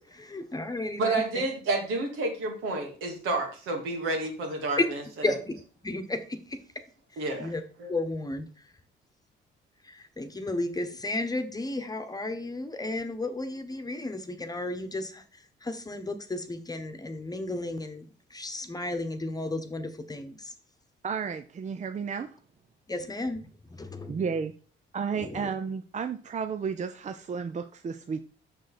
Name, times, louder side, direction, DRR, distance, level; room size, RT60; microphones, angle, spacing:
voice 1, 0.1-1.2 5.2-5.5 5.8-6.6 7.1-7.6 7.9-8.5 9.8-15.2 15.6-20.5 22.9-23.4 23.7-24.2 25.2-25.5, left 2 dB, 20° left, 7 dB, 1.2 m, -34 dB
voice 2, 1.0-5.4 7.2-7.5 7.8-7.9, right 2 dB, 85° right, 1 dB, 2.7 m, -30 dB
voice 3, 21.0-22.4 24.1-24.5 24.9-28.2, right 6 dB, 35° right, 8 dB, 0.6 m, -32 dB
6.5 x 6.4 x 4.3 m, 0.40 s
cardioid pair, 90°, 20 cm